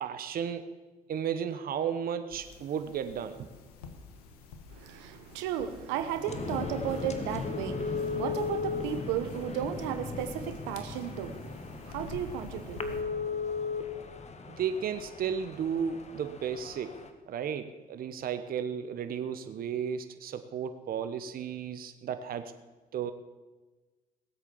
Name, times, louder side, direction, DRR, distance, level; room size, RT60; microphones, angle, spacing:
voice 1, 0.0-0.7 1.1-3.5 14.5-17.0 17.3-22.5 22.9-23.1, right 8 dB, 50° right, 10 dB, 1.0 m, -34 dB
sound 1, 2.3-13.0, left 5 dB, 85° left, 1.4 m, -49 dB
voice 2, 4.7-13.4, right 10 dB, 75° right, 9 dB, 1.1 m, -35 dB
sound 2, 6.3-17.1, left 4 dB, 35° left, 1.7 m, -37 dB
18.0 x 8.2 x 7.2 m, 1.2 s
hypercardioid pair, 60°, 19 cm